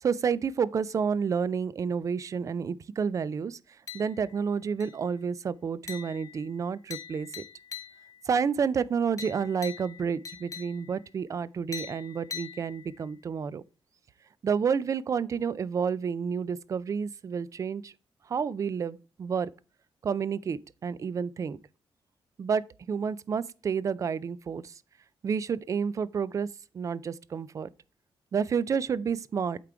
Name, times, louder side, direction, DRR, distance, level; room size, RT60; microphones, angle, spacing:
voice 1, 0.0-3.6 3.9-7.4 8.3-13.6 14.4-17.9 18.3-19.5 20.0-21.6 22.4-24.7 25.2-26.5 26.7-27.7 28.3-29.6, right 6 dB, 40° right, 0.3 m, -30 dB
sound 1, 3.9-4.4 4.8-5.2 5.9-8.3 9.2-11.1 11.7-13.1, left 7 dB, 40° left, 1.0 m, -43 dB
8.3 x 3.7 x 4.5 m
wide cardioid pair, 135°, 9 cm